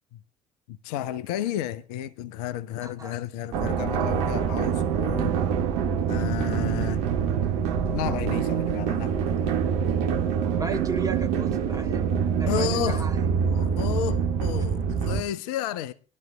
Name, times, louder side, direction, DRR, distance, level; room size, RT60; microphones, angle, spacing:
voice 1, 0.7-5.4 6.1-7.0 7.9-9.1 12.4-13.1 13.4-15.9, left 11 dB, 70° left, 0.7 m, -32 dB
voice 2, 2.8-3.1 10.6-12.0 12.3-13.2, right 4 dB, 15° right, 3.3 m, -34 dB
sound 1, 3.5-15.2, right 7 dB, 65° right, 1.2 m, -25 dB
23.0 x 12.0 x 2.2 m
figure-of-eight pair, 55°, 21 cm